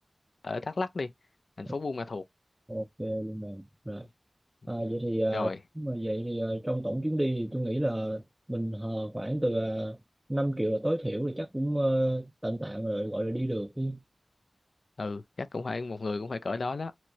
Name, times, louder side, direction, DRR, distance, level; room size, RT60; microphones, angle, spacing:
voice 1, 0.4-1.1 1.6-2.2 5.3-5.6 15.0-16.9, left 3 dB, 80° left, 0.4 m, -33 dB
voice 2, 2.7-4.0 4.7-5.5 5.8-8.2 8.5-10.0 10.3-14.0, right 1 dB, 15° right, 0.3 m, -30 dB
4.3 x 2.0 x 2.7 m
wide cardioid pair, 45°, 0 cm